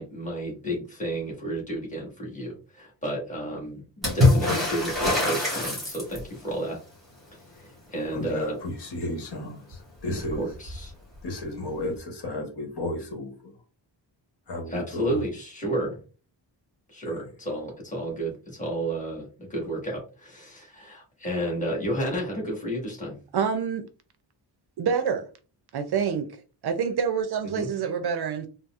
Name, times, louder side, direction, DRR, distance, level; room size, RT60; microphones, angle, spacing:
voice 1, 0.0-6.8 7.3-8.6 10.3-10.9 14.7-16.0 16.9-23.2 27.5-27.7, right 1 dB, 15° left, 1.3 m, -32 dB
Water / Splash splatter, 4.0-6.4 9.7-9.8 10.1-10.8 11.9-12.0, left 2 dB, ahead, 1.7 m, -23 dB
voice 2, 8.1-10.4 11.2-13.5 14.5-15.2 17.0-17.2, left 1 dB, 60° left, 1.1 m, -33 dB
voice 3, 23.3-23.8 24.8-25.3 25.7-26.3 26.6-28.5, right 7 dB, 60° right, 0.5 m, -26 dB
4.0 x 2.0 x 2.3 m
wide cardioid pair, 160°, 44 cm